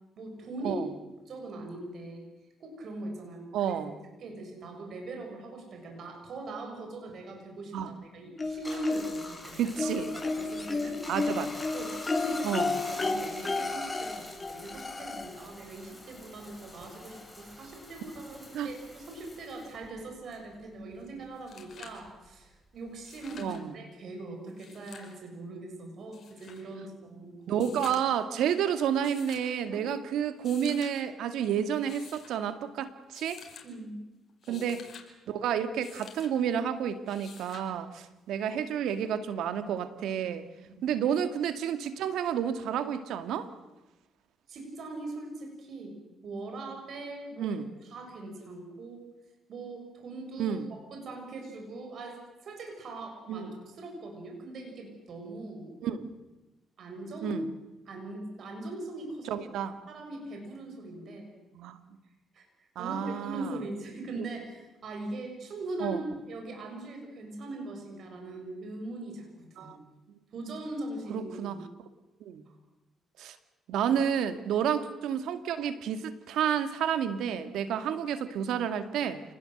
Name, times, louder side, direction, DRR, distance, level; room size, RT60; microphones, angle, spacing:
voice 1, 0.2-0.8 1.3-2.3 2.6-3.8 4.2-11.0 11.7-27.7 29.6-29.8 33.6-34.0 34.5-34.6 40.7-40.9 44.5-46.0 46.2-49.0 49.5-50.6 50.9-55.7 56.8-57.4 57.9-59.4 59.9-61.3 62.3-62.5 62.8-66.0 66.3-69.3 69.6-69.8 70.3-71.6 72.5-72.6, right 2 dB, 60° right, 3 dB, 7.4 m, -41 dB
voice 2, 3.5-3.9 7.7-7.9 9.6-10.1 11.1-11.5 12.4-12.8 18.5-18.7 23.4-23.7 27.5-33.4 34.5-34.8 35.3-40.5 40.8-43.5 47.4-47.7 50.4-50.7 53.3-53.5 55.8-56.1 57.2-57.5 59.3-59.7 61.5-61.8 62.8-63.6 65.8-66.0 69.6-69.8 71.1-71.6 72.2-72.4 73.2-73.4 73.7-79.2, right 8 dB, 85° right, 10 dB, 2.1 m, -30 dB
sound 1, 8.4-9.3 9.8-15.5 16.7-16.8 17.1-17.2, left 3 dB, 25° left, 2.5 m, -32 dB
Bathtub (filling or washing), 8.4-21.3 21.6-23.4, left 1 dB, 5° left, 7.5 m, -47 dB
sound 2, 21.0-21.1 21.3-22.0 22.9-23.6 24.5-25.2 26.1-26.6 27.5-28.2 29.0-29.5 30.3-30.9 31.7-32.3 33.1-33.7 34.3-35.1 35.8-36.3 37.1-37.7 39.1-39.2, left 7 dB, 55° left, 5.4 m, -50 dB
28.0 x 20.0 x 8.0 m, 1.1 s
cardioid pair, 90°, 0 cm